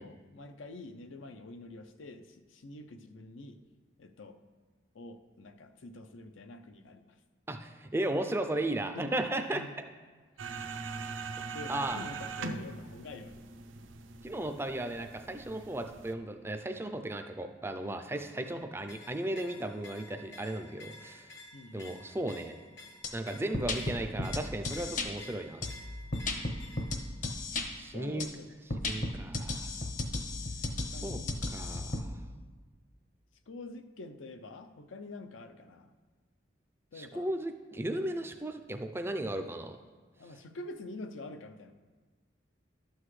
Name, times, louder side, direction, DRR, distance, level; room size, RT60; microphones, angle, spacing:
voice 1, 0.0-3.6 4.0-4.4 4.9-7.1 8.8-9.1 9.5-9.8 11.5-13.4 21.5-21.9 26.3-26.7 27.9-28.5 29.4-29.6 30.9-31.3 32.3-32.4 33.5-35.9 36.9-37.3 40.2-41.7, left 2 dB, 85° left, 8 dB, 0.6 m, -47 dB
voice 2, 7.5-9.6 11.7-12.0 14.2-21.3 21.7-22.5 23.1-25.7 27.7-28.3 28.9-29.7 31.0-31.2 31.5-32.2 36.9-39.8, right 1 dB, 10° right, 6 dB, 0.4 m, -35 dB
sound 1, 10.4-16.1, right 4 dB, 80° right, 0.6 m, -41 dB
sound 2, 18.8-27.1, left 2 dB, 70° left, 1.0 m, -52 dB
sound 3, 23.0-23.1 23.5-25.1 25.6-27.7 28.2-28.3 28.7-32.0, left 2 dB, 40° left, 0.8 m, -34 dB
12.0 x 7.9 x 3.2 m, 1.4 s
head